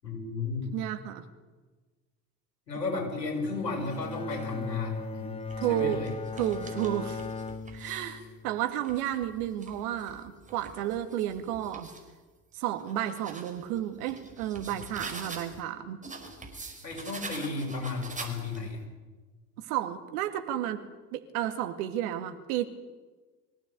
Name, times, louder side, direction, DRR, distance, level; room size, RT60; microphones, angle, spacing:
voice 1, 0.0-0.7 2.7-5.3 5.7-6.1 8.0-8.1 14.7-14.8 16.8-18.8, left 3 dB, 85° left, 1 dB, 6.6 m, -34 dB
voice 2, 0.7-1.2 5.6-6.0 6.3-7.2 7.7-11.9 12.5-16.0 19.6-20.8 21.1-22.6, right 11 dB, 65° right, 8 dB, 2.3 m, -32 dB
Bowed string instrument, 3.4-8.6, left 4 dB, 10° left, 1.0 m, -38 dB
sound 1, 3.8-4.5 5.2-8.2 8.6-12.1 12.5-15.6 16.0-18.8, right 3 dB, 15° right, 5.0 m, -45 dB
23.5 x 16.5 x 8.3 m, 1.3 s
hypercardioid pair, 70°, 49 cm